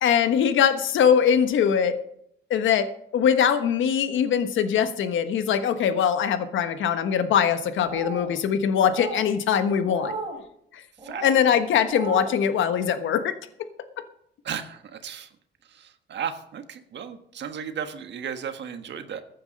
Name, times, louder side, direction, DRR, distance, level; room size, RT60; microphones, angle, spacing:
voice 1, 0.0-2.0 2.5-10.1 10.7-10.8 11.2-13.4 14.0-14.1, left 8 dB, 75° left, 10 dB, 1.3 m, -22 dB
sound 1, 7.8-8.3 8.8-9.3 9.8-10.4 11.0-11.3 11.8-12.4, right 2 dB, 25° right, 4.1 m, -35 dB
voice 2, 14.4-15.3 15.7-19.2, right 8 dB, 65° right, 8 dB, 1.5 m, -35 dB
15.0 x 9.5 x 5.3 m, 0.72 s
cardioid pair, 90°, 20 cm